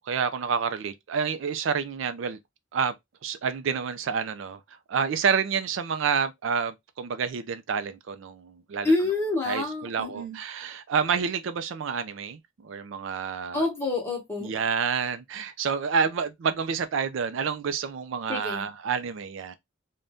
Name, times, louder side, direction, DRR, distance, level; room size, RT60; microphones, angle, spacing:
voice 1, 0.1-2.4 2.7-2.9 3.2-4.6 4.9-8.9 9.5-13.6 14.4-19.6, right 6 dB, 65° right, 0.4 m, -28 dB
voice 2, 8.8-10.4 13.5-14.5 18.3-18.7, left 2 dB, 10° left, 1.0 m, -27 dB
2.6 x 2.2 x 3.4 m
head